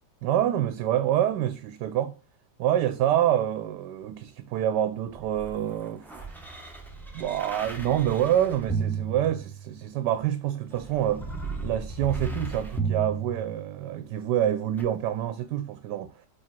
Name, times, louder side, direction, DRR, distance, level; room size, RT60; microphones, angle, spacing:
voice 1, 0.2-2.1 2.6-6.3 7.1-11.3 11.6-16.1, right 11 dB, 80° right, 1.2 m, -27 dB
sound 1, 5.1-10.0 10.7-14.0 14.8-14.9, right 5 dB, ahead, 0.9 m, -34 dB
4.8 x 4.7 x 4.4 m
omnidirectional pair, 1.8 m